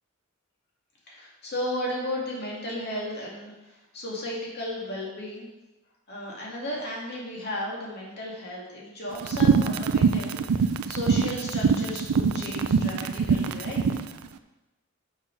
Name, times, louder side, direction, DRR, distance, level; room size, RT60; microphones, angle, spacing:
voice 1, 1.1-5.5 6.1-13.8, left 1 dB, 50° left, -4 dB, 2.3 m, -34 dB
sound 1, 9.2-14.1, right 6 dB, 90° right, 0.4 m, -23 dB
6.3 x 6.0 x 5.4 m, 1.1 s
head